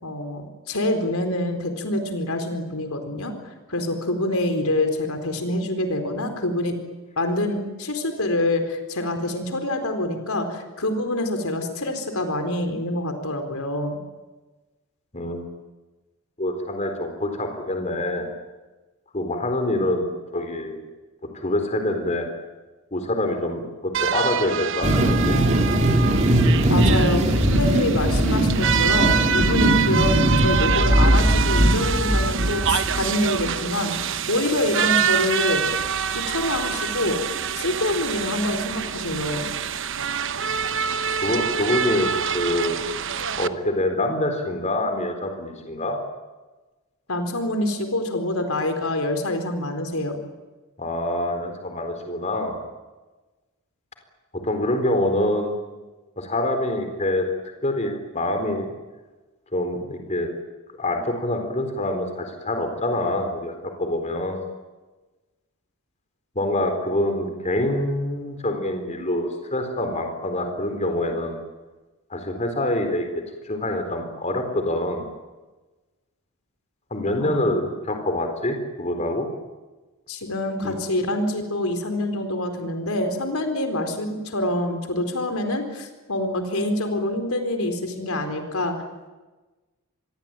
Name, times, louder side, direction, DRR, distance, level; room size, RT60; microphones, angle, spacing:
voice 1, 0.0-3.3 3.7-6.7 7.2-14.0 26.7-33.9 34.3-35.7 36.1-37.2 37.5-39.5 47.1-50.2 77.2-77.4 80.1-88.7, left 1 dB, 75° left, 6 dB, 4.3 m, -26 dB
voice 2, 15.1-15.4 16.4-18.3 19.1-20.8 21.3-22.3 22.9-25.4 41.2-42.8 43.4-46.0 50.8-52.6 54.3-55.5 56.2-57.3 57.6-58.7 59.5-60.3 60.8-63.5 63.8-64.4 66.4-71.4 72.1-73.1 73.4-75.1 76.9-79.3 80.6-80.8, left 1 dB, 30° left, 5 dB, 4.1 m, -25 dB
washington steettrumpet, 23.9-43.5, right 7 dB, 55° right, 0.9 m, -26 dB
sound 1, 24.8-33.3, right 1 dB, 35° right, 4.3 m, -20 dB
26.5 x 22.5 x 9.1 m, 1.2 s
head